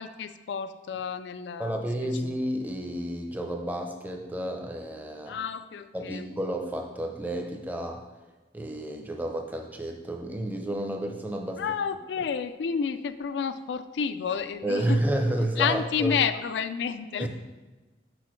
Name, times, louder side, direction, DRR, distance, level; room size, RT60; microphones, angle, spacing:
voice 1, 0.0-1.8 5.3-6.3 11.6-15.0 15.6-17.3, left 7 dB, 80° left, 12 dB, 0.3 m, -30 dB
voice 2, 1.6-5.4 5.9-8.0 8.5-11.8 12.2-12.3 14.6-16.2 17.2-17.3, right 1 dB, 10° right, 3 dB, 0.5 m, -31 dB
6.3 x 6.1 x 3.1 m, 1.2 s
head